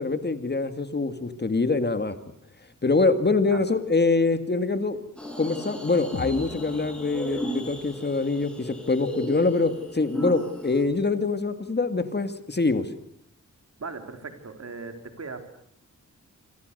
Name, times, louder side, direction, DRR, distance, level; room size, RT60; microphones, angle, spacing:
voice 1, 0.0-2.2 2.8-5.0 5.4-12.9, left 3 dB, 35° left, 10 dB, 2.1 m, -24 dB
sound 1, 5.2-10.8, equal, 5° left, 7.3 m, -35 dB
sound 2, 6.1-10.1, left 4 dB, 60° left, 2.4 m, -43 dB
voice 2, 13.8-15.4, right 4 dB, 55° right, 7 dB, 3.6 m, -38 dB
29.0 x 25.5 x 6.7 m, 0.68 s
wide cardioid pair, 135°, 31 cm